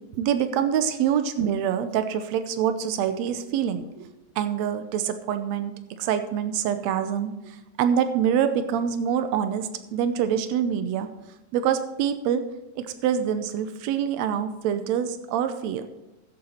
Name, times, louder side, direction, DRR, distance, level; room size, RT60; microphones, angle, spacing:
voice 1, 0.1-4.1 4.4-11.1 11.5-12.4 12.8-15.9, right 8 dB, 85° right, 10 dB, 1.5 m, -25 dB
14.5 x 8.1 x 4.3 m, 1.0 s
omnidirectional pair, 4.0 m